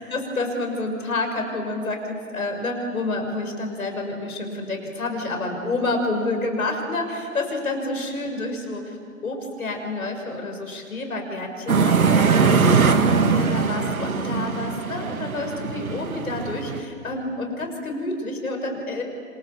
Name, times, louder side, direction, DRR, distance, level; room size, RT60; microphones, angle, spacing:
voice 1, 0.0-9.0 9.2-19.0, left 2 dB, 65° left, 3 dB, 6.2 m, -29 dB
sound 1, 11.7-16.8, right 5 dB, 65° right, 1.9 m, -21 dB
28.0 x 26.0 x 7.1 m, 2.2 s
figure-of-eight pair, 140°, 46 cm